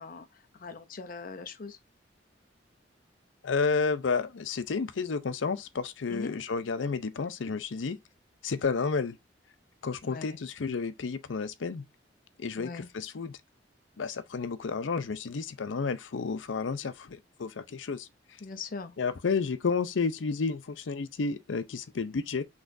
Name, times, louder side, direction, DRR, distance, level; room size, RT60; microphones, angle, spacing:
voice 1, 0.0-1.8 6.1-6.3 10.0-10.4 12.6-12.9 18.4-18.9, left 4 dB, 50° left, 0.6 m, -41 dB
voice 2, 3.4-8.0 8.4-9.2 9.8-11.8 12.4-13.4 14.0-18.1 19.0-22.4, left 4 dB, 90° left, 0.6 m, -31 dB
5.9 x 3.1 x 2.5 m
head